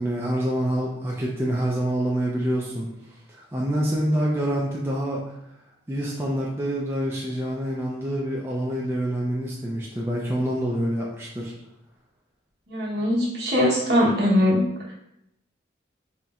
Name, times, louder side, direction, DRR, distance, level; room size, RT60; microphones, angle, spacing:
voice 1, 0.0-2.9 3.3-5.2 5.9-11.5, right 1 dB, 10° right, -4 dB, 0.4 m, -26 dB
voice 2, 12.7-14.6, equal, 60° right, -5 dB, 1.1 m, -21 dB
4.2 x 2.0 x 3.6 m, 0.82 s
head